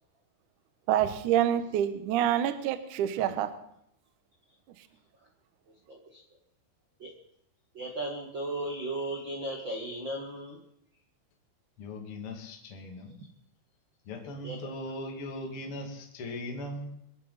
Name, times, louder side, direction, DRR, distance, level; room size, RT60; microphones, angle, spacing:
voice 1, 0.9-3.5, right 10 dB, 90° right, 11 dB, 1.8 m, -27 dB
voice 2, 5.9-6.2 7.0-7.1 7.7-10.6 14.4-14.6, right 1 dB, 45° right, -2 dB, 1.5 m, -36 dB
voice 3, 11.8-13.2 14.0-16.9, left 1 dB, 40° left, 1 dB, 2.5 m, -39 dB
24.0 x 11.5 x 4.1 m, 0.73 s
omnidirectional pair, 5.2 m